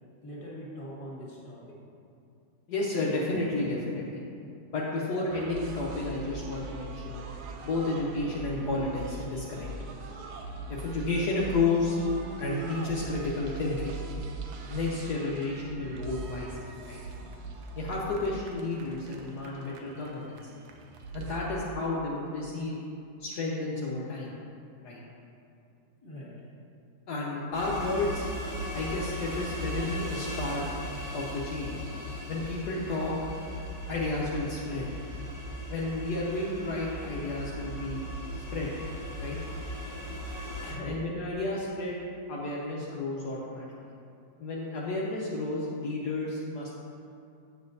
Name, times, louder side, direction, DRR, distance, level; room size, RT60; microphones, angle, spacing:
voice 1, 0.2-1.8 26.0-26.4 40.8-41.0, equal, 30° left, -6 dB, 1.7 m, -43 dB
voice 2, 2.7-4.2 4.7-7.2 7.6-9.7 10.7-12.0 12.4-14.0 14.7-17.0 17.7-20.5 21.1-22.7 23.2-24.3 24.8-25.0 27.1-28.3 28.7-30.6 31.1-31.7 32.3-33.1 33.9-34.9 35.7-38.0 38.3-38.7 39.2-39.4 40.6-42.0 42.3-43.9 44.4-46.7, left 2 dB, 65° left, -5 dB, 1.3 m, -32 dB
sound 1, 5.3-21.4, right 2 dB, 70° right, 1.1 m, -41 dB
sound 2, 27.5-40.7, equal, 15° right, 0.8 m, -38 dB
8.5 x 7.1 x 2.6 m, 2.5 s
omnidirectional pair, 2.0 m